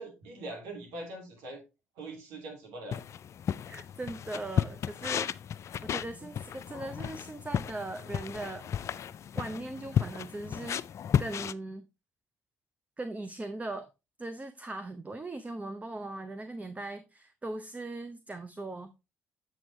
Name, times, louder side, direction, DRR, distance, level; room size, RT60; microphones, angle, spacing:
voice 1, 0.0-1.6 2.0-3.0 6.0-6.3 10.0-10.1, right 2 dB, 80° right, 2.7 m, -42 dB
sound 1, 2.9-11.5, left 8 dB, 55° left, 0.4 m, -33 dB
voice 2, 3.7-5.3 5.6-8.9 9.3-10.8 11.2-11.8 13.0-13.9 14.2-19.1, right 2 dB, 25° right, 0.8 m, -39 dB
7.7 x 6.1 x 3.2 m
hypercardioid pair, 55°, 6 cm